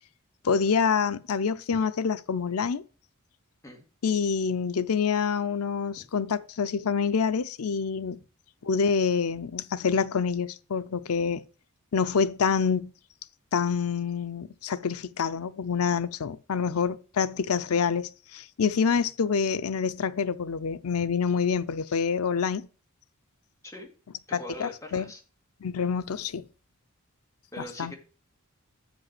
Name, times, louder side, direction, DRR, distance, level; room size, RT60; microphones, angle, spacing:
voice 1, 0.4-2.8 4.0-8.2 8.6-11.4 11.9-12.9 13.5-22.7 24.3-25.0 25.6-26.4 27.8-27.9, left 6 dB, 85° left, 0.5 m, -27 dB
voice 2, 24.3-25.2 27.5-28.0, equal, 15° left, 1.9 m, -42 dB
7.6 x 5.3 x 5.8 m
head